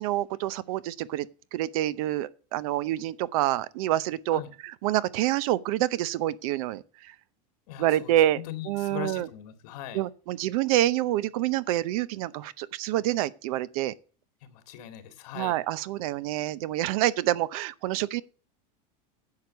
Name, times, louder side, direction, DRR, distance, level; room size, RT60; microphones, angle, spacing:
voice 1, 0.0-7.1 7.8-9.3 9.9-13.9 15.3-18.2, right 14 dB, 65° right, 0.7 m, -27 dB
voice 2, 7.7-8.2 8.5-10.0 14.4-15.6, left 11 dB, 65° left, 2.3 m, -40 dB
10.5 x 6.7 x 6.6 m
supercardioid pair, 160°, 20 cm